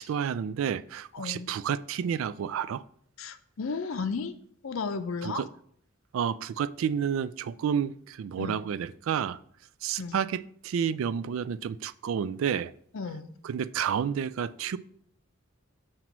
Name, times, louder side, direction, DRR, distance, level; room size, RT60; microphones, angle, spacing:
voice 1, 0.0-2.8 5.2-5.5 6.1-9.4 9.8-12.7 13.4-14.8, right 8 dB, 70° right, 0.3 m, -30 dB
voice 2, 1.1-1.5 3.2-4.4 4.6-5.4 8.4-8.6 10.0-10.2 12.9-13.3, left 4 dB, 75° left, 0.6 m, -34 dB
7.5 x 3.0 x 5.9 m
head